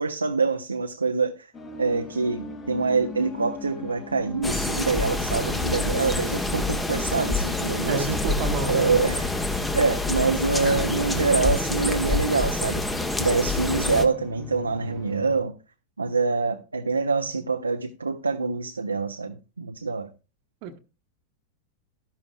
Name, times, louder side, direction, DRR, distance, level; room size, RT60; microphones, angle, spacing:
voice 1, 0.0-1.5 1.8-8.1 8.7-9.3 9.7-12.8 13.2-15.5 16.0-20.1, right 4 dB, 80° right, 0.5 m, -25 dB
sound 1, 1.5-15.4, left 3 dB, 30° left, 2.2 m, -39 dB
sound 2, 4.4-14.1, left 2 dB, 10° left, 1.1 m, -27 dB
voice 2, 7.9-8.9 20.6-20.8, right 5 dB, 45° right, 1.0 m, -29 dB
12.5 x 11.0 x 2.3 m
figure-of-eight pair, 90°, 0 cm